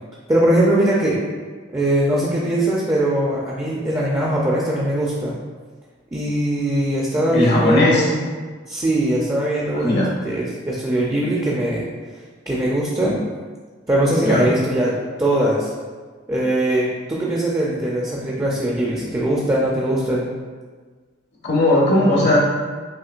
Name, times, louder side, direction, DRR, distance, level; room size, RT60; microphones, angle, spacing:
voice 1, 0.3-1.2 1.7-5.3 6.1-8.2 8.7-11.9 12.5-13.2 13.9-15.7 16.3-20.3, right 1 dB, 15° right, -4 dB, 0.5 m, -21 dB
voice 2, 7.3-8.1 9.7-10.1 14.2-14.5 21.4-22.4, left 1 dB, 60° left, -4 dB, 0.8 m, -17 dB
5.8 x 2.9 x 2.5 m, 1.5 s
head